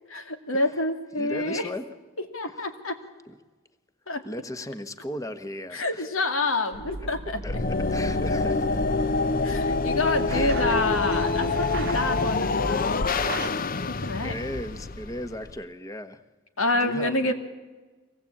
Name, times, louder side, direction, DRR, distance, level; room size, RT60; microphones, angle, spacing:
voice 1, 0.1-1.7 2.3-3.0 4.1-4.2 5.7-7.4 9.4-13.1 13.9-14.3 16.6-17.3, left 2 dB, 85° left, 6 dB, 2.5 m, -27 dB
voice 2, 1.2-1.9 2.6-2.7 3.3-3.4 4.2-6.1 6.4-6.5 7.0-7.1 7.4-8.8 10.3-10.6 11.8-12.1 14.0-16.2 16.7-17.3, left 1 dB, 15° left, 10 dB, 1.2 m, -36 dB
sound 1, 6.7-13.5, right 3 dB, 55° right, 1.0 m, -37 dB
sound 2, 7.4-15.6, left 3 dB, 45° left, 0.7 m, -26 dB
24.5 x 18.5 x 8.6 m, 1.3 s
head